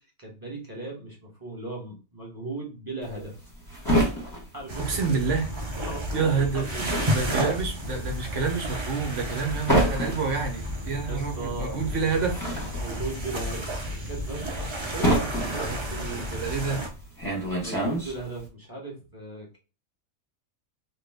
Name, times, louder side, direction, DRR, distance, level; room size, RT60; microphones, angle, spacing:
voice 1, 0.2-3.3 4.5-4.8 5.1-5.2 5.9-6.8 7.2-7.5 9.5-9.6 11.1-12.0 12.8-16.9 17.6-19.6, right 2 dB, 15° right, -1 dB, 0.9 m, -38 dB
sound 1, 3.0-5.6 5.8-18.5, right 1 dB, 15° left, 0.9 m, -28 dB
sound 2, 4.7-16.9, equal, 40° right, 0.4 m, -32 dB
voice 2, 4.8-5.5 6.1-6.6 7.1-12.4 15.6-16.8, right 5 dB, 60° right, 4 dB, 1.2 m, -28 dB
3.2 x 2.2 x 3.4 m, 0.33 s
omnidirectional pair, 1.5 m